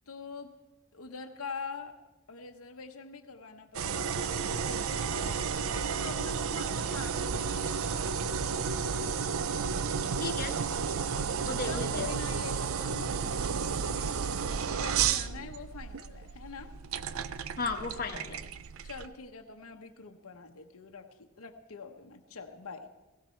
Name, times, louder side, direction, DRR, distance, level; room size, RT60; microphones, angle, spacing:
voice 1, 0.1-0.5 0.9-1.9 2.3-8.1 11.6-16.7 18.8-22.9, left 5 dB, 75° left, 4 dB, 0.9 m, -44 dB
sound 1, 3.7-19.1, right 6 dB, 70° right, 0.5 m, -32 dB
voice 2, 10.2-10.6 11.4-12.1 17.6-18.4, left 3 dB, 45° left, 3 dB, 1.1 m, -35 dB
17.0 x 17.0 x 4.5 m, 1.1 s
head